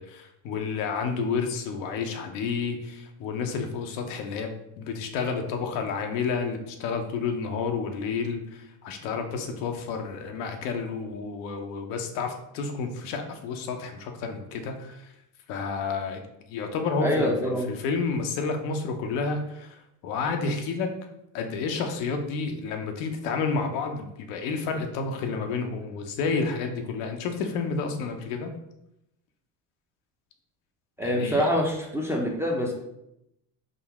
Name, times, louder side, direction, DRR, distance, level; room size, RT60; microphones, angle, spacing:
voice 1, 0.0-4.5 4.8-15.1 15.5-16.2 16.5-20.9 21.3-28.5 31.0-31.5, left 4 dB, 75° left, 4 dB, 0.7 m, -30 dB
voice 2, 17.0-17.7 31.0-32.7, equal, 5° right, -1 dB, 0.5 m, -25 dB
3.8 x 2.0 x 3.4 m, 0.82 s
supercardioid pair, 80°, 48 cm